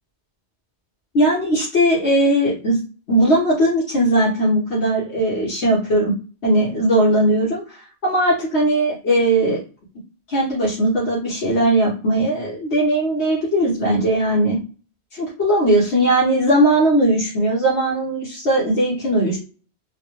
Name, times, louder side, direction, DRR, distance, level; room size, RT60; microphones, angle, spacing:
voice 1, 1.1-2.8 3.1-6.1 6.4-9.6 10.3-14.6 15.1-19.4, right 1 dB, 75° left, -5 dB, 1.3 m, -18 dB
3.7 x 2.2 x 3.0 m, 0.37 s
omnidirectional pair, 1.1 m